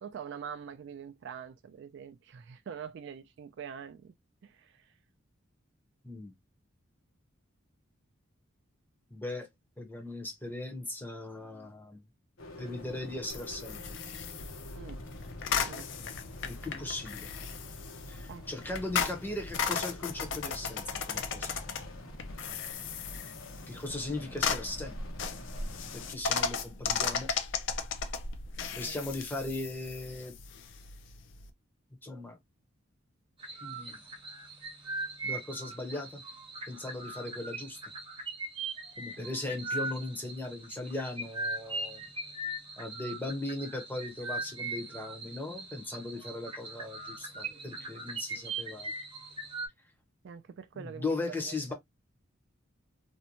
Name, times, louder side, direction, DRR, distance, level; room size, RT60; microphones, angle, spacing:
voice 1, 0.0-4.1 4.4-4.9 14.8-15.0 15.7-15.9 18.3-18.4 28.8-29.0 39.2-39.3 50.2-51.1 51.4-51.7, right 7 dB, 55° right, 0.3 m, -44 dB
voice 2, 9.1-9.5 9.8-12.0 12.6-13.8 16.4-17.3 18.1-21.5 23.7-24.9 25.9-27.3 28.8-30.3 32.0-32.4 33.6-34.0 35.2-36.2 36.7-37.8 39.0-42.0 42.8-48.9 50.7-51.7, left 2 dB, 10° left, 0.7 m, -38 dB
sound 1, 12.4-26.1, left 1 dB, 80° left, 0.9 m, -48 dB
sound 2, 13.3-31.5, left 6 dB, 60° left, 0.4 m, -36 dB
sound 3, 33.4-49.7, right 2 dB, 25° right, 0.7 m, -40 dB
2.5 x 2.1 x 2.8 m
head